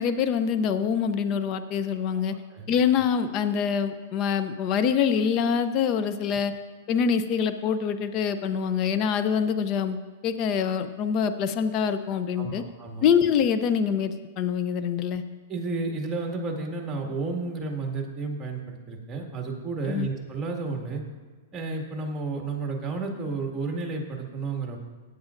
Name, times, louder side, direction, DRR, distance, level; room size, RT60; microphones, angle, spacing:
voice 1, 0.0-2.3 2.7-6.5 6.9-10.0 10.2-12.6 13.0-15.2 19.9-20.1, left 7 dB, 40° left, 10 dB, 0.6 m, -25 dB
voice 2, 2.3-2.7 12.4-13.1 15.5-21.0 21.5-24.8, right 3 dB, 15° right, 1 dB, 2.0 m, -32 dB
16.0 x 9.5 x 2.6 m, 1.4 s
hypercardioid pair, 125°, 0 cm